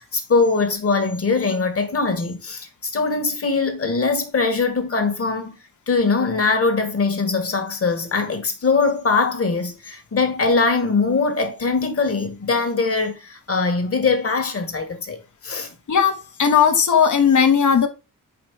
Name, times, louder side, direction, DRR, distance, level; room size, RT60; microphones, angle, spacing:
voice 1, 0.0-5.6 5.9-15.7, left 4 dB, 40° left, 1.7 m, -22 dB
voice 2, 15.9-17.9, left 7 dB, 60° left, 1.3 m, -17 dB
5.2 x 4.4 x 4.7 m
cardioid pair, 100°, 34 cm